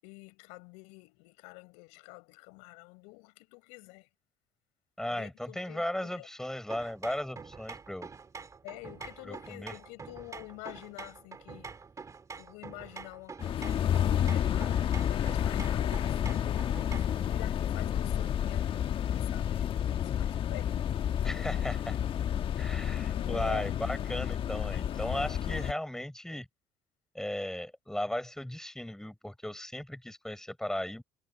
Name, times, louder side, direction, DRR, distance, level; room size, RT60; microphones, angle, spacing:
voice 1, 0.0-4.1 5.1-6.3 8.6-11.8 12.4-20.8 23.1-23.8, left 30 dB, 85° left, 7.2 m, -48 dB
voice 2, 5.0-8.1 9.2-9.7 21.2-22.0 22.6-26.5 27.1-31.0, left 1 dB, 5° left, 6.1 m, -36 dB
sound 1, 6.7-17.2, right 5 dB, 30° right, 3.0 m, -46 dB
sound 2, 13.4-25.7, left 9 dB, 50° left, 1.4 m, -30 dB
supercardioid pair, 90°, 11 cm